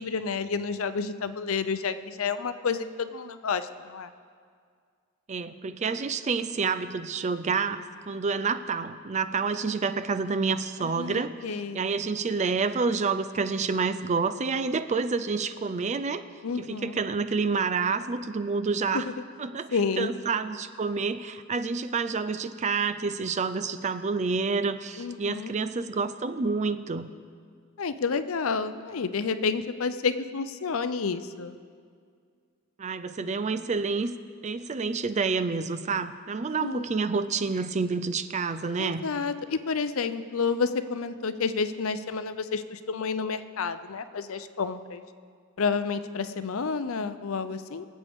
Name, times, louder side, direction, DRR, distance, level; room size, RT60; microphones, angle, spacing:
voice 1, 0.0-4.1 10.8-11.8 16.4-17.0 18.9-19.1 19.7-20.1 25.0-25.5 27.8-31.6 36.6-36.9 38.8-45.0 45.6-47.9, left 5 dB, 70° left, 11 dB, 0.6 m, -30 dB
voice 2, 5.3-11.3 11.7-16.2 16.6-19.1 19.4-19.7 20.0-27.1 32.8-34.1 34.4-39.0, right 4 dB, 35° right, 12 dB, 0.4 m, -28 dB
24.0 x 8.2 x 3.6 m, 2.1 s
head